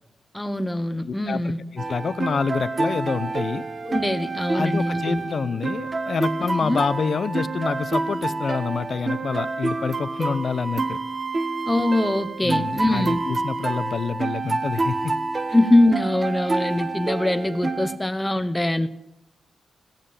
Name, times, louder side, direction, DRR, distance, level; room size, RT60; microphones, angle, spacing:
voice 1, 0.3-1.6 3.8-5.3 6.6-6.8 11.7-13.2 15.5-18.9, left 1 dB, 15° left, 9 dB, 1.1 m, -22 dB
voice 2, 1.1-1.4 1.7-3.6 4.5-11.0 12.4-15.2, left 5 dB, 65° left, 15 dB, 0.7 m, -27 dB
sound 1, 1.8-18.0, right 3 dB, 45° right, 1.0 m, -28 dB
16.0 x 6.7 x 8.7 m, 0.86 s
supercardioid pair, 50°, 0 cm